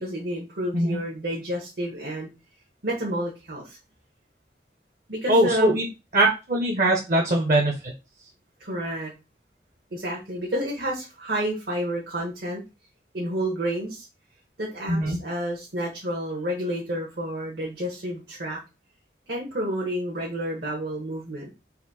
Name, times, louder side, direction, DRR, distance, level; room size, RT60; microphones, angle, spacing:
voice 1, 0.0-2.3 2.8-3.8 5.1-5.8 8.6-9.1 9.9-12.6 13.1-14.1 14.6-18.6 19.3-21.5, equal, 65° right, -2 dB, 1.2 m, -30 dB
voice 2, 5.3-5.8 6.1-7.9 14.9-15.2, right 1 dB, 50° right, 1 dB, 0.8 m, -21 dB
4.2 x 2.6 x 4.1 m, 0.28 s
head